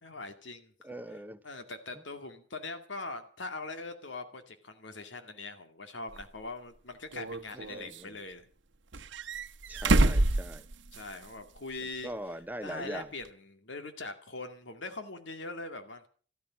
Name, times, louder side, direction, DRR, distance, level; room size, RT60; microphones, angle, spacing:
voice 1, 0.0-0.7 1.4-8.5 10.4-10.5 10.9-12.1 12.6-16.1, left 3 dB, 85° left, 7 dB, 2.3 m, -42 dB
voice 2, 0.8-1.4 7.5-8.1 9.7-10.7 12.0-13.1, right 1 dB, 10° right, 12 dB, 0.8 m, -41 dB
sound 1, 6.1-6.2 7.1-8.0 8.9-11.3 11.6-11.7 13.3-13.4, right 2 dB, 85° right, 1.0 m, -27 dB
14.0 x 13.5 x 7.4 m, 0.42 s
head